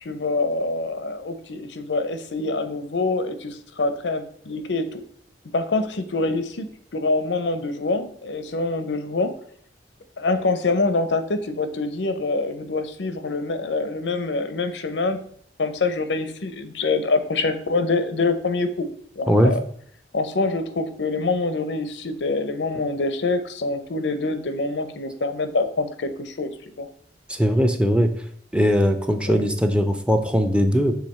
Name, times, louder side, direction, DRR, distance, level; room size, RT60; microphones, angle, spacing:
voice 1, 0.0-5.0 5.5-6.7 6.9-9.3 10.2-15.2 15.6-18.9 19.2-19.6 20.1-26.5 26.8-26.9 29.3-29.4, left 3 dB, 85° left, 10 dB, 0.7 m, -25 dB
voice 2, 27.4-28.1 28.5-31.0, equal, 5° right, 6 dB, 0.5 m, -19 dB
6.5 x 3.4 x 4.2 m, 0.64 s
head